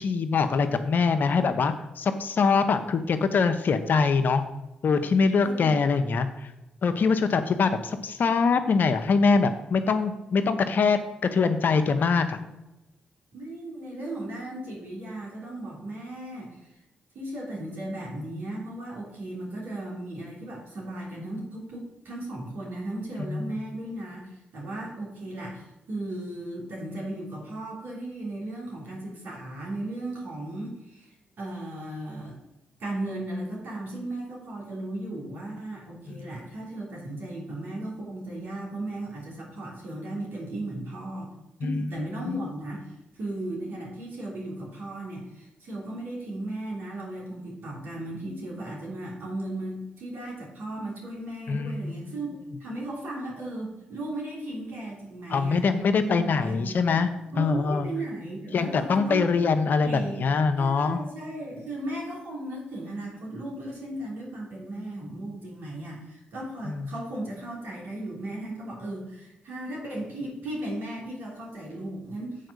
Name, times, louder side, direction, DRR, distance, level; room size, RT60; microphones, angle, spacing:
voice 1, 0.0-4.4 4.8-6.3 6.8-11.0 11.3-12.4 23.2-23.4 36.1-36.2 41.6-41.9 42.3-42.4 51.5-52.0 55.3-57.1 57.4-57.9 58.5-61.0 66.7-66.9, left 5 dB, 60° left, 9 dB, 0.8 m, -23 dB
voice 2, 5.4-5.8 13.3-16.5 17.1-31.1 31.4-32.4 32.8-41.3 41.6-52.3 52.6-55.7 56.0-57.0 57.3-59.3 59.8-60.3 60.6-72.5, right 1 dB, 70° right, -3 dB, 3.1 m, -36 dB
7.6 x 4.5 x 6.7 m, 0.98 s
supercardioid pair, 45°, 4 cm